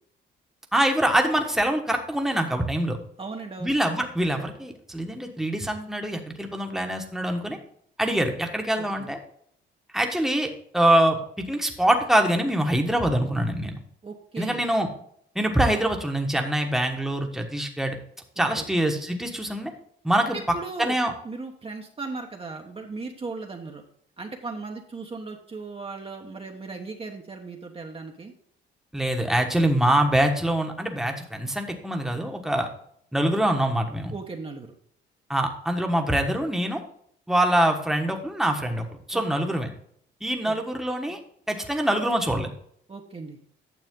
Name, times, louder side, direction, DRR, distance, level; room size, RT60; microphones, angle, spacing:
voice 1, 0.7-3.0 3.6-7.6 8.0-9.2 9.9-13.8 14.4-14.9 15.3-18.0 18.4-19.7 20.0-20.4 20.8-21.1 28.9-32.7 33.1-34.1 35.3-36.8 37.3-39.7 40.2-41.2 41.5-42.5, right 1 dB, ahead, 3 dB, 1.3 m, -24 dB
voice 2, 3.2-3.8 8.7-9.1 14.0-14.7 18.5-18.7 20.3-23.8 24.2-28.3 34.1-34.7 39.1-39.5 40.4-40.5 42.9-43.4, right 4 dB, 30° right, 2 dB, 1.1 m, -37 dB
9.4 x 6.7 x 3.7 m, 0.65 s
cardioid pair, 90°, 20 cm